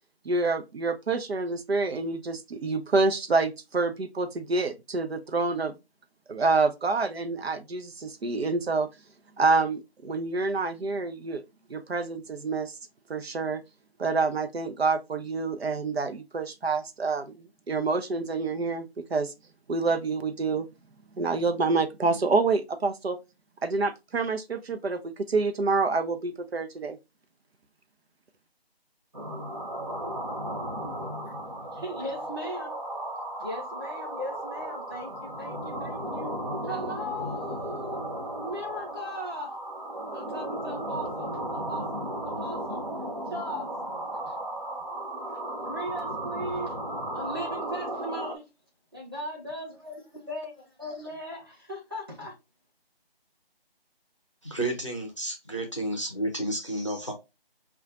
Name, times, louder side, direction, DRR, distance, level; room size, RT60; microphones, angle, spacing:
voice 1, 0.3-5.7 6.3-8.9 9.4-11.4 11.7-12.7 13.1-13.6 14.0-19.3 19.7-20.7 21.1-23.2 23.6-27.0, right 3 dB, 85° right, 0.6 m, -27 dB
sound 1, 29.1-48.3, right 1 dB, 40° right, 0.8 m, -35 dB
voice 2, 31.7-32.7 33.4-36.4 36.6-38.0 38.4-39.5 40.1-41.9 42.2-42.9 43.3-43.7 44.1-44.4 45.3-46.8 47.1-48.4 48.9-50.5 50.8-52.3, equal, 25° right, 1.0 m, -38 dB
voice 3, 54.4-57.1, right 1 dB, 30° left, 0.6 m, -31 dB
5.0 x 2.3 x 2.4 m
figure-of-eight pair, 175°, 30 cm